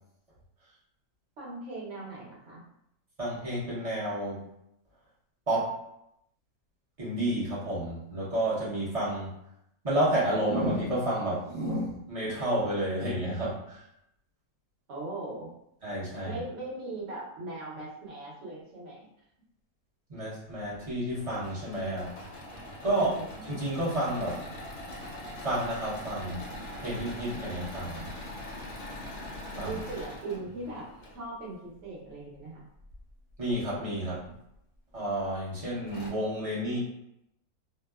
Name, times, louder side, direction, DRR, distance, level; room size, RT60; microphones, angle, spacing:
voice 1, 1.4-2.6 14.9-15.5 16.2-19.1 22.9-23.4 29.6-30.9 31.1-32.7, right 2 dB, 55° right, -4 dB, 1.0 m, -39 dB
voice 2, 3.2-4.5 5.5-5.8 7.0-9.3 9.8-13.8 15.8-16.4 20.1-22.3 22.8-23.1 23.5-24.4 25.4-28.2 29.6-29.8 33.4-34.3 34.9-36.8, right 1 dB, 30° right, -8 dB, 0.7 m, -30 dB
Engine / Mechanisms, 21.1-31.2 32.8-33.5 34.1-34.2 34.5-34.6 35.5-35.6 35.9-36.1, left 1 dB, 60° left, 0.7 m, -42 dB
2.7 x 2.1 x 2.3 m, 0.78 s
omnidirectional pair, 1.6 m